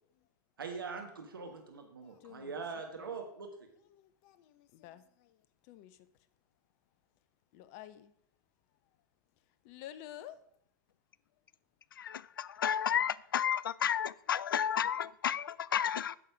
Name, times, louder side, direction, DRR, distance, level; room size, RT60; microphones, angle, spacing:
voice 1, 0.6-3.5, right 5 dB, 80° right, 4 dB, 1.4 m, -42 dB
voice 2, 2.0-2.6 3.0-3.1 3.9-6.1 7.5-8.1 9.6-10.4, left 12 dB, 50° left, 13 dB, 0.8 m, -51 dB
voice 3, 12.0-16.2, left 9 dB, 80° left, 21 dB, 0.4 m, -32 dB
9.0 x 6.6 x 4.6 m, 0.69 s
hypercardioid pair, 100°, 11 cm